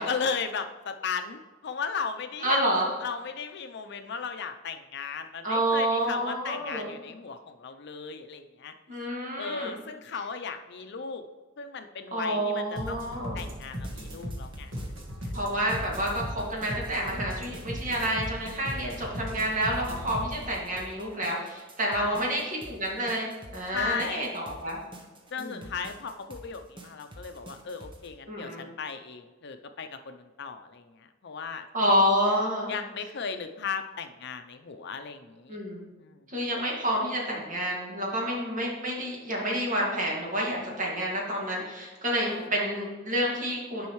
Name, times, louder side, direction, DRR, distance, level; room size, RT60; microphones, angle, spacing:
voice 1, 0.0-2.6 3.0-9.1 9.4-11.2 11.6-14.7 15.0-15.3 21.9-22.3 23.7-24.3 25.3-31.7 32.7-35.6 36.0-36.2 42.2-42.5, left 5 dB, 60° left, 7 dB, 0.6 m, -36 dB
voice 2, 2.4-2.9 5.4-6.9 8.9-9.7 12.1-13.4 15.3-23.3 23.5-24.8 25.4-25.6 28.3-28.7 31.7-32.7 35.5-35.9 36.3-43.9, equal, 40° right, -3 dB, 2.1 m, -29 dB
sound 1, 12.8-20.5, equal, 70° right, 1.7 m, -37 dB
sound 2, 13.4-28.1, right 1 dB, 25° right, 1.0 m, -48 dB
10.5 x 5.4 x 3.1 m, 1.3 s
head